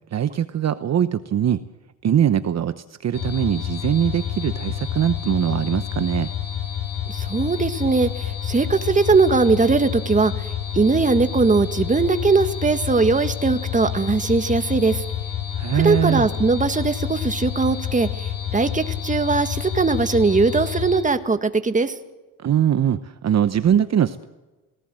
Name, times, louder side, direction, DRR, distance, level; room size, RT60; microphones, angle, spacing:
voice 1, 0.1-1.6 2.0-6.3 15.5-16.3 22.4-24.3, right 9 dB, 50° right, 11 dB, 1.0 m, -21 dB
sound 1, 3.1-21.0, left 9 dB, 70° left, 7.6 m, -29 dB
voice 2, 7.1-15.0 15.7-21.9, right 4 dB, 20° right, 9 dB, 1.7 m, -20 dB
26.5 x 18.5 x 7.7 m, 1.2 s
cardioid pair, 105°, 35 cm